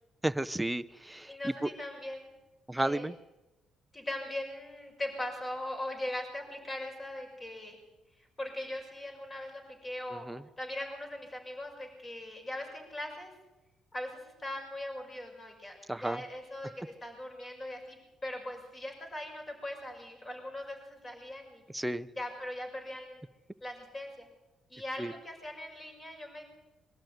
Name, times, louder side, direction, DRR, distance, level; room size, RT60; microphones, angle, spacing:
voice 1, 0.2-1.7 2.7-3.1 10.1-10.4 15.9-16.2 21.7-22.1 25.0-25.1, right 1 dB, 10° right, 11 dB, 0.6 m, -33 dB
voice 2, 1.3-2.3 2.8-3.1 3.9-7.8 8.4-10.3 10.6-13.3 13.9-21.6 22.2-23.2 23.6-24.3 24.7-26.4, left 1 dB, 25° left, 3 dB, 5.9 m, -40 dB
22.5 x 13.0 x 9.3 m, 1.0 s
cardioid pair, 90°, 0 cm